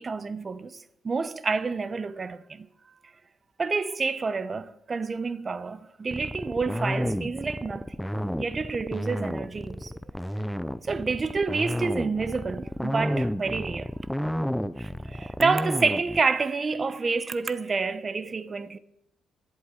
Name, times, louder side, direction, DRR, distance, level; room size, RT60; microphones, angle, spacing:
voice 1, 0.0-2.7 3.6-8.0 8.4-9.9 10.8-13.9 14.8-18.8, right 4 dB, 35° right, 0.7 m, -28 dB
sound 1, 6.1-16.2, equal, 5° left, 0.5 m, -31 dB
11.5 x 8.0 x 8.2 m
cardioid pair, 90°, 0 cm